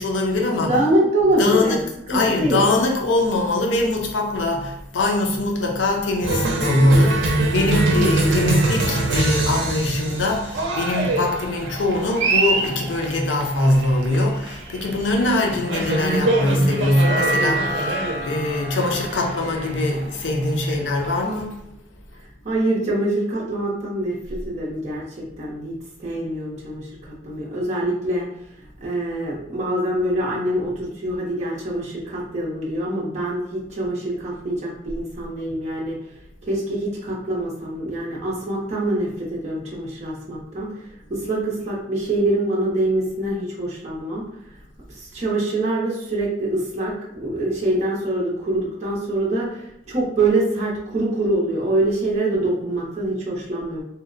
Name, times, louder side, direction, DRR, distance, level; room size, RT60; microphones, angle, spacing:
voice 1, 0.0-0.8 1.4-1.8 2.1-22.3, left 1 dB, 80° left, 0.5 m, -22 dB
voice 2, 0.6-1.8 2.1-2.6 7.9-8.4 22.4-28.3 28.8-36.0 36.4-44.2 44.9-53.8, right 1 dB, 40° right, 0.6 m, -24 dB
Cheering, 6.2-21.4, right 2 dB, 85° right, 0.5 m, -24 dB
sound 1, 15.2-21.6, right 1 dB, 30° left, 1.0 m, -30 dB
2.8 x 2.0 x 2.5 m
head